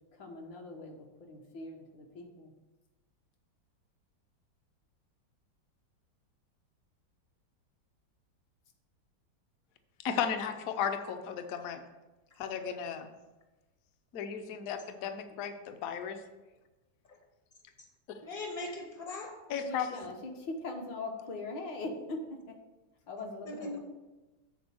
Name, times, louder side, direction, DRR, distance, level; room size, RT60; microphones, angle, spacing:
voice 1, 0.1-2.5 19.6-22.6 23.1-23.8, left 2 dB, 75° left, 2 dB, 1.8 m, -41 dB
voice 2, 10.0-11.8 12.4-13.1 14.1-16.2 19.5-19.9, left 7 dB, 60° left, 7 dB, 1.0 m, -35 dB
voice 3, 18.2-19.4 23.5-23.8, left 2 dB, 35° left, 1 dB, 0.6 m, -39 dB
7.8 x 4.1 x 6.9 m, 1.1 s
omnidirectional pair, 2.0 m